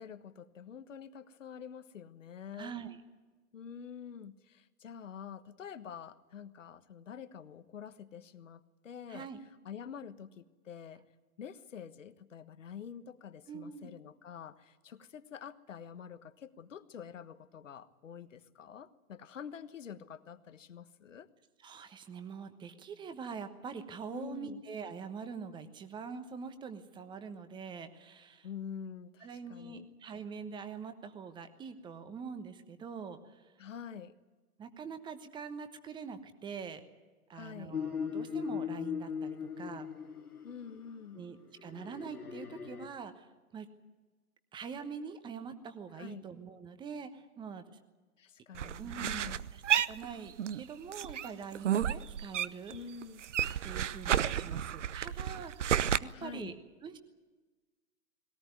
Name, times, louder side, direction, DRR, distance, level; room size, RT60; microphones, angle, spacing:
voice 1, 0.0-2.8 3.5-9.3 9.6-11.0 11.4-21.3 24.1-24.6 28.4-29.9 33.6-34.2 37.3-37.8 40.4-41.2 45.9-46.3 48.2-49.4 52.7-53.2 56.1-56.6, left 7 dB, 55° left, 12 dB, 1.3 m, -47 dB
voice 2, 2.6-3.0 9.1-9.4 13.5-13.9 21.6-28.5 29.2-33.5 34.6-36.8 37.3-39.9 41.1-43.7 44.5-47.7 48.8-52.7 53.6-56.5 56.8-57.0, right 6 dB, 10° right, 10 dB, 1.1 m, -44 dB
sound 1, 37.7-40.7 41.7-42.9, left 7 dB, 80° left, 1.6 m, -38 dB
sound 2, 48.5-50.6 50.9-52.8 53.0-56.0, right 9 dB, 55° right, 0.8 m, -31 dB
20.5 x 18.0 x 9.4 m, 1.3 s
figure-of-eight pair, 120°, 44 cm